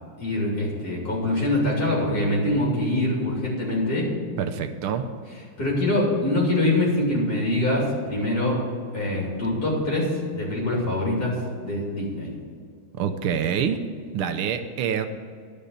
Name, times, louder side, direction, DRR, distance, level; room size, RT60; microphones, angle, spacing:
voice 1, 0.2-4.0 5.6-8.6 8.9-12.3, left 1 dB, 45° left, -4 dB, 3.6 m, -24 dB
voice 2, 4.4-5.1 12.9-13.8 14.1-15.1, right 7 dB, 80° right, 8 dB, 1.5 m, -26 dB
11.0 x 5.3 x 8.5 m, 2.2 s
omnidirectional pair, 2.4 m